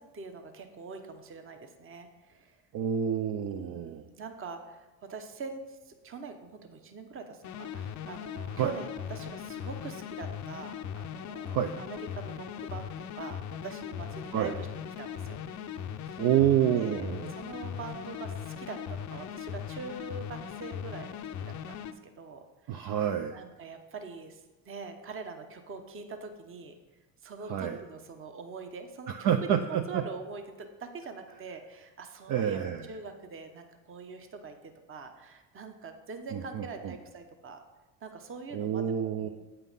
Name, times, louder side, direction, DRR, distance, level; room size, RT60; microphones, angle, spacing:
voice 1, 0.0-2.6 3.3-15.4 16.1-16.2 16.8-17.0 17.3-21.1 21.4-21.9 22.1-23.0 23.3-26.7 27.2-32.6 32.9-37.6 38.0-39.3, right 4 dB, 30° right, 6 dB, 1.0 m, -43 dB
voice 2, 2.7-4.0 8.5-8.7 11.5-11.7 14.3-14.6 16.2-17.3 22.7-23.4 27.4-27.8 29.1-30.0 32.3-32.8 36.3-36.9 38.5-39.3, right 9 dB, 50° right, 6 dB, 0.7 m, -28 dB
sound 1, 7.4-21.9, left 8 dB, 45° left, 0.6 m, -39 dB
8.3 x 5.6 x 5.6 m, 1.1 s
supercardioid pair, 105°, 41 cm